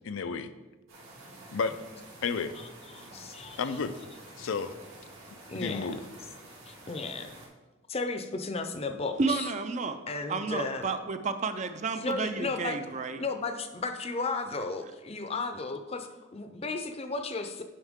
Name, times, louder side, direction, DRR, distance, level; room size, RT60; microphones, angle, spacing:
voice 1, 0.0-0.5 1.5-1.7 2.2-2.5 3.6-4.0 4.4-4.7 5.5-6.0, left 5 dB, 85° left, 11 dB, 0.5 m, -31 dB
sound 1, 0.9-7.5, right 1 dB, 90° right, 2.6 m, -49 dB
voice 2, 2.9-3.6 5.5-5.9 6.7-7.3 7.9-9.5 10.1-10.9 12.0-12.8 13.2-17.6, left 3 dB, 30° left, 7 dB, 0.6 m, -34 dB
voice 3, 9.2-10.0 10.3-13.2 14.9-15.0, right 4 dB, 35° right, 9 dB, 0.4 m, -31 dB
9.7 x 5.4 x 3.6 m, 1.2 s
head